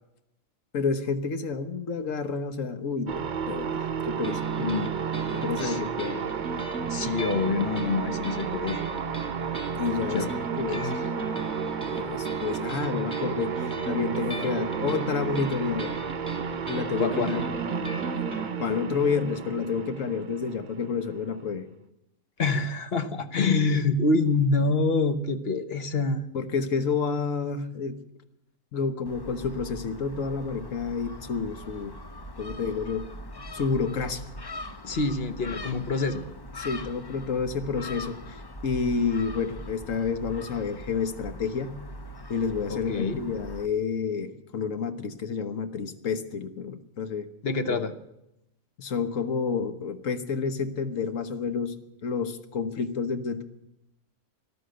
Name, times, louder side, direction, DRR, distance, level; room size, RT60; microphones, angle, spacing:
voice 1, 0.7-4.5 5.3-6.3 9.7-10.3 10.6-11.0 11.9-16.0 16.7-17.4 18.6-21.6 26.3-28.0 28.7-31.9 32.4-33.1 33.5-34.2 36.6-41.8 42.3-47.3 47.7-47.8 48.8-51.8 52.0-53.4, left 5 dB, 65° left, 10 dB, 1.5 m, -29 dB
sound 1, 3.1-21.4, right 6 dB, 45° right, 0.7 m, -32 dB
sound 2, 4.2-18.5, right 3 dB, 5° left, 2.2 m, -37 dB
voice 2, 4.6-4.9 5.6-5.8 6.9-8.8 10.1-10.3 10.7-11.0 17.0-17.4 22.4-26.2 34.8-36.2 42.7-43.2 47.4-47.9, left 3 dB, 50° left, 10 dB, 1.1 m, -26 dB
Gull seagull, 29.1-43.7, left 1 dB, 25° left, 0.5 m, -41 dB
13.5 x 11.5 x 7.8 m, 0.84 s
omnidirectional pair, 1.5 m